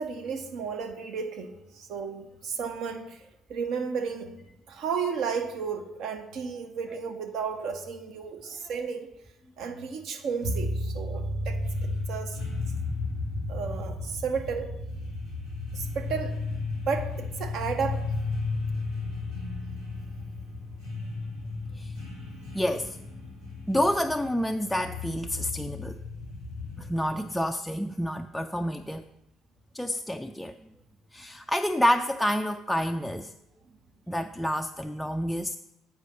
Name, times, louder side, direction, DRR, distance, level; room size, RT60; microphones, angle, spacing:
voice 1, 0.0-3.2 3.5-4.3 4.7-9.1 9.6-12.4 13.5-14.7 15.7-16.4 16.9-18.0, right 6 dB, 55° right, 6 dB, 0.8 m, -33 dB
sound 1, 10.4-27.2, left 2 dB, 80° right, 2.1 m, -34 dB
voice 2, 22.5-23.0 23.7-26.0 26.8-29.1 29.7-30.5 31.1-33.3 34.1-35.6, equal, 5° left, 5 dB, 0.3 m, -28 dB
8.1 x 4.7 x 6.2 m, 0.87 s
figure-of-eight pair, 50°, 0 cm